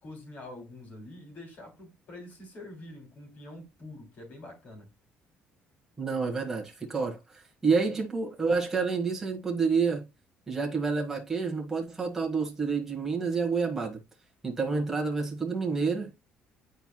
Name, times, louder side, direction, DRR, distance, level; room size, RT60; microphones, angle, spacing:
voice 1, 0.0-4.9, left 1 dB, 50° left, 3.1 m, -46 dB
voice 2, 6.0-10.1 10.5-14.0 14.4-16.1, right 5 dB, 10° right, 1.4 m, -29 dB
9.1 x 4.5 x 2.3 m
cardioid pair, 140°, 4 cm